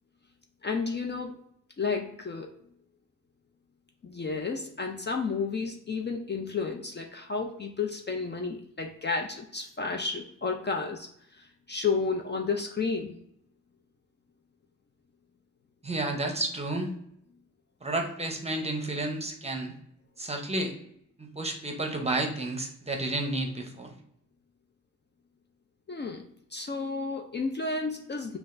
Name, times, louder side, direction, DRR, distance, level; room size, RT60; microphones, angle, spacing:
voice 1, 0.6-1.4 1.8-2.5 4.0-11.1 11.4-13.2 25.9-26.2 26.5-28.4, left 4 dB, 35° left, 2 dB, 0.5 m, -32 dB
voice 2, 15.8-16.9 17.8-19.7 20.2-20.7 21.2-23.9, right 2 dB, 20° right, 3 dB, 0.8 m, -31 dB
5.6 x 2.4 x 2.5 m, 0.71 s
cardioid pair, 85°, 32 cm